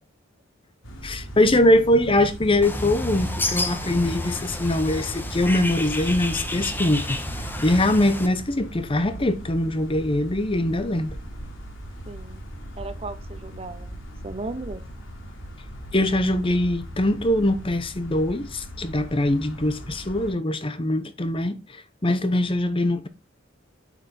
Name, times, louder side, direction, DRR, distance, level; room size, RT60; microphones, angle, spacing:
sound 1, 0.8-20.3, equal, 80° left, 2.9 m, -39 dB
voice 1, 1.0-7.2 7.6-11.2 15.9-23.1, left 1 dB, 25° left, 0.8 m, -22 dB
Bird, 2.6-8.3, left 1 dB, 10° left, 1.1 m, -31 dB
voice 2, 12.1-12.4 12.8-14.0 14.2-14.8, right 2 dB, 30° right, 0.8 m, -35 dB
8.6 x 5.7 x 4.2 m
head